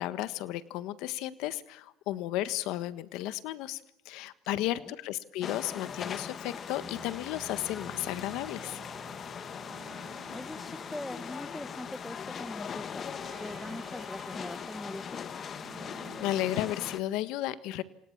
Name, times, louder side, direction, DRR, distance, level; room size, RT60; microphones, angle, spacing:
voice 1, 0.0-3.8 4.0-8.8 16.2-17.8, left 14 dB, 75° left, 14 dB, 1.5 m, -33 dB
voice 2, 4.5-5.0 10.3-15.2, left 1 dB, 5° left, 14 dB, 1.2 m, -42 dB
sound 1, 5.4-17.0, left 7 dB, 40° left, 1.8 m, -40 dB
sound 2, 6.7-16.8, right 8 dB, 50° right, 1.7 m, -52 dB
28.5 x 27.5 x 7.3 m, 0.78 s
supercardioid pair, 100°, 0 cm